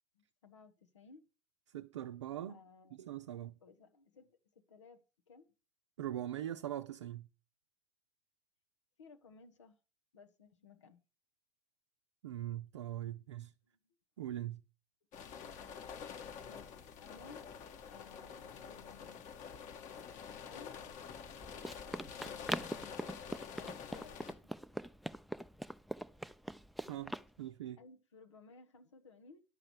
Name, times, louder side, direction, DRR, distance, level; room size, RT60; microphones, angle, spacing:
voice 1, 0.1-1.2 2.5-3.2 3.6-5.5 9.0-9.8 10.1-11.0 13.6-13.8 16.5-17.4 17.9-19.2 20.4-20.7 22.2-24.5 25.2-25.4 27.8-29.4, left 4 dB, 90° left, 1.3 m, -59 dB
voice 2, 1.7-2.6 2.9-3.6 6.0-7.3 12.2-13.5 14.2-14.6 26.9-27.8, right 12 dB, 85° right, 0.5 m, -42 dB
sound 1, 15.1-24.3, left 7 dB, 60° left, 1.6 m, -48 dB
Run, 21.1-27.3, equal, ahead, 0.6 m, -43 dB
11.0 x 6.5 x 6.0 m
hypercardioid pair, 65°, 15 cm